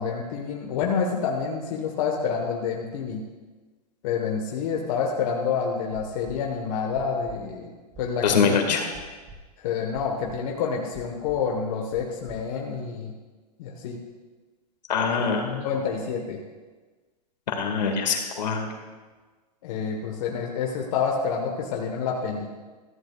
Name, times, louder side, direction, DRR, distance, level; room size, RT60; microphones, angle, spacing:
voice 1, 0.0-3.2 4.0-7.7 8.0-8.6 9.6-13.1 13.6-14.0 15.2-16.4 19.6-22.6, left 6 dB, 55° left, 1 dB, 1.5 m, -28 dB
sound 1, 5.9-6.4 6.9-7.4 7.9-8.4 8.9-9.4 9.9-10.4 10.9-11.4 11.9-12.4 12.9-13.0, right 1 dB, 25° right, 1.6 m, -46 dB
voice 2, 8.2-8.8 14.9-15.7 17.5-18.7, left 5 dB, 80° left, 2 dB, 2.2 m, -24 dB
14.5 x 14.0 x 2.4 m, 1.3 s
hypercardioid pair, 130°, 21 cm